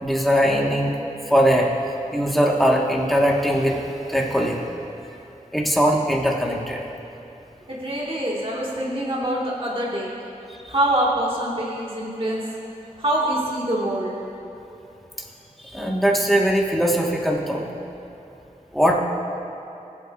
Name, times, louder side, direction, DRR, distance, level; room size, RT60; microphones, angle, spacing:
voice 1, 0.0-1.0 1.3-1.7 2.1-4.6 5.5-6.8 10.6-10.7 15.6-17.6 18.7-19.0, equal, ahead, -2 dB, 1.6 m, -20 dB
voice 2, 7.7-10.1 10.7-12.4 13.0-14.1, right 1 dB, 40° right, -5 dB, 2.0 m, -24 dB
20.5 x 8.6 x 2.6 m, 2.9 s
wide cardioid pair, 50°, 14 cm